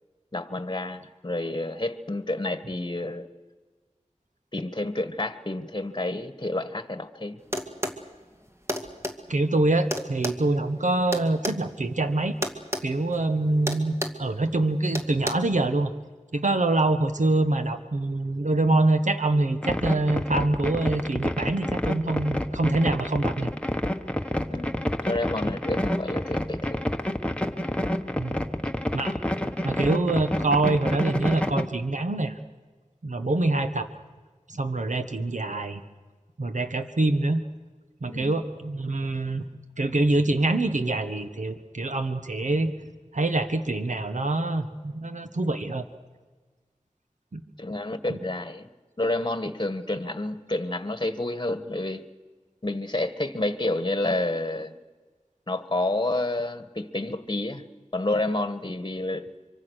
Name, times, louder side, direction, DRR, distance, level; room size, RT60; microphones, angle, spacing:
voice 1, 0.3-3.3 4.5-7.4 24.5-26.9 38.1-38.4 47.6-48.7 49.0-52.1 52.6-54.8 55.5-57.6 57.9-59.3, left 2 dB, 35° left, 11 dB, 1.6 m, -29 dB
sound 1, 7.5-8.0 8.7-9.2 9.9-11.6 12.4-12.9 13.1-13.3 13.7-14.2 14.9-15.3, equal, 20° right, 2.3 m, -30 dB
voice 2, 9.3-12.3 12.8-15.9 16.3-23.5 28.2-28.4 28.9-29.2 29.6-32.3 33.0-33.9 34.5-35.8 36.4-37.4 38.0-39.4 39.8-42.7 43.1-45.8 47.3-47.4 48.1-48.2, right 2 dB, 85° right, 8 dB, 1.4 m, -25 dB
sound 2, 19.6-31.6, left 1 dB, 10° left, 1.5 m, -28 dB
25.0 x 24.5 x 6.5 m, 1.4 s
wide cardioid pair, 45°, 12 cm